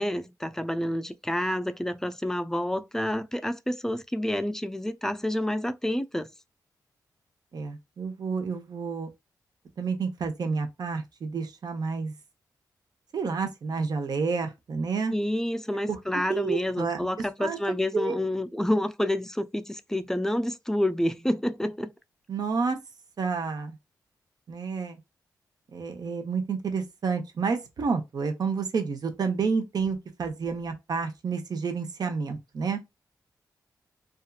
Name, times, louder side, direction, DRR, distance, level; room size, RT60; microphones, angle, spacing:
voice 1, 0.0-6.3 15.1-21.9, left 1 dB, 5° left, 0.4 m, -28 dB
voice 2, 7.5-9.1 9.8-12.1 13.1-15.1 15.9-16.0 16.3-17.1 17.4-17.6 17.9-18.2 22.3-22.8 23.2-23.8 24.5-25.0 25.7-32.8, right 5 dB, 60° right, 0.7 m, -30 dB
2.6 x 2.4 x 2.3 m
cardioid pair, 60°, 7 cm